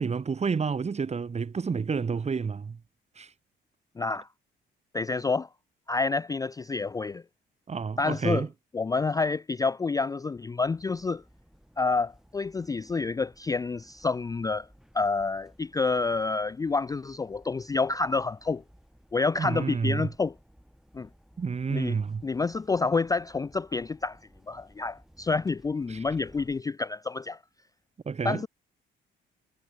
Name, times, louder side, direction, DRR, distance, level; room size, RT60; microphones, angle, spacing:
voice 1, 0.0-2.8 3.2-3.3 7.7-8.5 19.4-20.1 21.4-22.2 25.9-26.0 28.0-28.4, right 5 dB, 35° right, 1.6 m, -29 dB
voice 2, 4.0-4.3 4.9-5.5 5.9-7.2 8.0-8.5 8.7-11.2 11.8-14.7 14.9-18.6 19.1-20.3 20.9-21.1 21.7-22.0 22.2-24.2 24.5-27.4 28.2-28.5, left 4 dB, 20° left, 0.4 m, -28 dB
sound 1, 10.6-26.6, equal, ahead, 4.8 m, -58 dB
cardioid pair, 90°, 20 cm